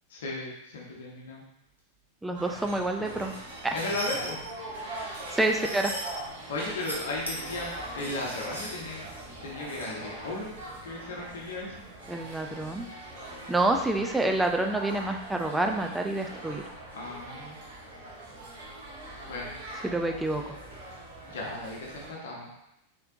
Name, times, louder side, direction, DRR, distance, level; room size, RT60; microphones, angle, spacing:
voice 1, 0.1-1.4 3.7-4.4 6.5-9.1 9.4-10.5 10.8-11.7 16.9-17.5 19.3-19.5 21.3-22.5, left 2 dB, 60° left, -3 dB, 0.9 m, -35 dB
voice 2, 2.2-3.3 3.6-3.8 5.3-5.9 12.1-12.9 13.5-16.6 19.8-20.4, right 2 dB, 5° right, 3 dB, 0.4 m, -27 dB
sound 1, 2.3-22.1, right 1 dB, 55° right, 1.1 m, -42 dB
sound 2, 3.2-4.3 5.0-6.1 6.6-7.0 7.2-9.9, equal, 90° right, 0.9 m, -40 dB
4.2 x 3.7 x 2.6 m, 0.85 s
figure-of-eight pair, 90°, 0 cm